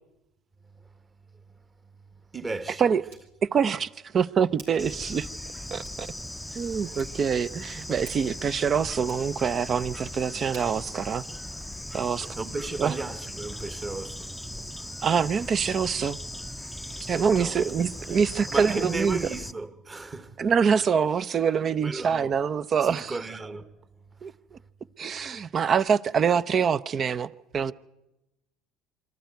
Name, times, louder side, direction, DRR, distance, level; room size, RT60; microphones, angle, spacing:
Hands, 1.5-12.3, right 3 dB, 85° right, 4.4 m, -56 dB
voice 1, 2.1-2.8 6.8-7.0 12.4-14.4 14.7-14.9 16.9-17.6 18.1-18.2 18.5-20.5 21.8-22.4 22.8-23.8 24.1-24.6, right 3 dB, 25° right, 1.4 m, -36 dB
voice 2, 3.4-5.3 5.7-6.1 6.5-11.2 11.9-12.3 12.8-12.9 15.0-16.2 17.1-19.2 20.4-23.1 24.2-24.6 25.0-27.7, right 6 dB, 40° right, 0.6 m, -25 dB
Bird / Insect, 4.8-19.5, left 1 dB, 5° left, 0.6 m, -38 dB
24.5 x 13.5 x 9.4 m
supercardioid pair, 85°, 0 cm